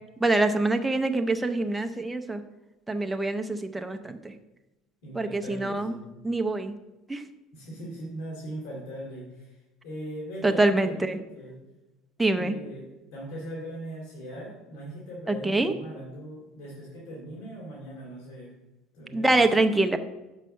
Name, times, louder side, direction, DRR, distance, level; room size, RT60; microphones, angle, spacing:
voice 1, 0.2-2.4 2.9-4.3 5.2-5.9 6.2-6.7 7.1-7.2 10.4-11.2 12.2-12.5 15.3-15.7 19.1-20.0, right 2 dB, 10° right, 6 dB, 0.6 m, -25 dB
voice 2, 5.0-6.1 7.5-11.6 12.3-18.5 18.9-19.4, right 1 dB, 75° left, -4 dB, 2.3 m, -40 dB
5.5 x 5.4 x 6.4 m, 1.0 s
cardioid pair, 130°, 0 cm